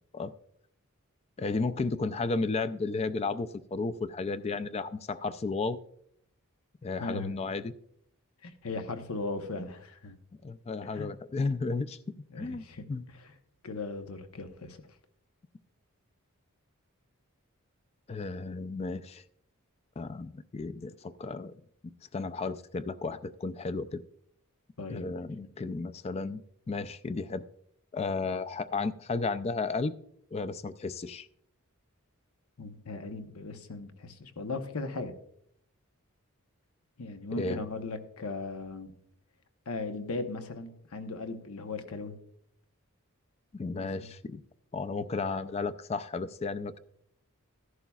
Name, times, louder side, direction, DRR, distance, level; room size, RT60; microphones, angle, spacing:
voice 1, 1.4-5.8 6.8-7.7 10.4-12.0 12.4-13.0 18.1-19.2 20.0-21.5 22.1-24.0 24.9-26.4 26.7-27.4 27.9-29.9 30.3-31.3 37.4-37.6 43.5-44.4 44.7-46.8, left 3 dB, 30° left, 14 dB, 0.4 m, -33 dB
voice 2, 7.0-7.4 8.4-10.2 10.8-11.1 12.3-12.8 13.6-14.8 24.8-25.1 32.6-35.1 37.0-38.9 39.7-42.2 43.7-44.1, left 3 dB, 80° left, 8 dB, 0.9 m, -38 dB
14.5 x 11.0 x 2.3 m, 0.70 s
head